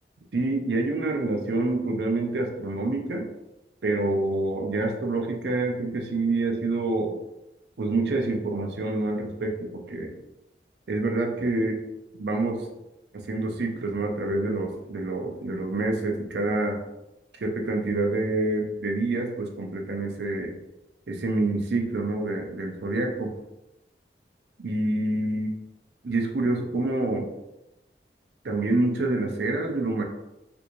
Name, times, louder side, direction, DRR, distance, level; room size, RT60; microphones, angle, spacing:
voice 1, 0.3-3.3 3.8-7.1 7.8-10.1 10.9-11.8 12.2-12.7 13.3-16.8 17.4-20.5 21.1-23.3 24.6-25.5 26.0-27.3 28.4-30.0, right 2 dB, 75° right, 2 dB, 0.5 m, -27 dB
3.4 x 3.0 x 2.6 m, 0.93 s
head